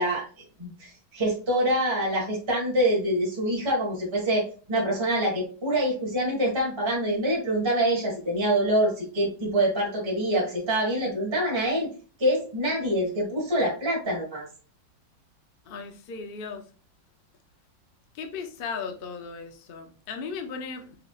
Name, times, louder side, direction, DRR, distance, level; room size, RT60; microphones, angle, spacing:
voice 1, 0.0-11.9 12.2-14.5, right 1 dB, 15° right, -4 dB, 1.6 m, -25 dB
voice 2, 15.7-16.6 18.1-21.0, left 5 dB, 90° left, 6 dB, 0.4 m, -36 dB
4.9 x 4.2 x 2.4 m, 0.38 s
omnidirectional pair, 2.0 m